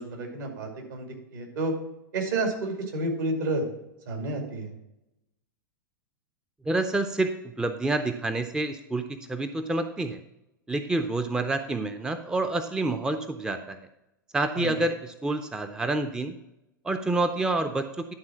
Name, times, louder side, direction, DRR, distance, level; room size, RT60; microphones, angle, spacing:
voice 1, 0.0-1.7 2.1-3.6 4.1-4.7 14.5-14.8, right 2 dB, 70° right, 3 dB, 2.4 m, -30 dB
voice 2, 6.7-10.2 10.7-13.8 14.3-16.3 16.8-18.0, right 2 dB, 5° right, 8 dB, 0.5 m, -28 dB
11.0 x 3.8 x 5.9 m, 0.90 s
hypercardioid pair, 100°, 11 cm